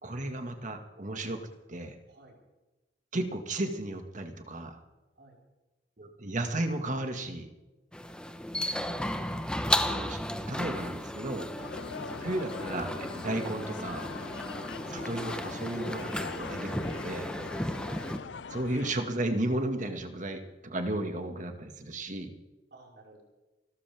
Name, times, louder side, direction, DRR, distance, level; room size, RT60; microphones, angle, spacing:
voice 1, 0.0-1.4 1.7-2.0 3.1-4.8 6.0-7.5 9.9-10.2 10.5-11.5 12.2-14.1 14.9-17.3 18.5-22.3, right 1 dB, 45° right, 6 dB, 2.0 m, -34 dB
sound 1, 7.9-18.2, left 1 dB, 5° left, 1.1 m, -34 dB
voice 2, 8.5-8.9 17.4-17.6 22.7-23.2, right 2 dB, 65° right, -1 dB, 5.2 m, -53 dB
sound 2, 11.6-18.9, left 5 dB, 80° left, 0.5 m, -42 dB
29.0 x 13.5 x 3.6 m, 1.1 s
head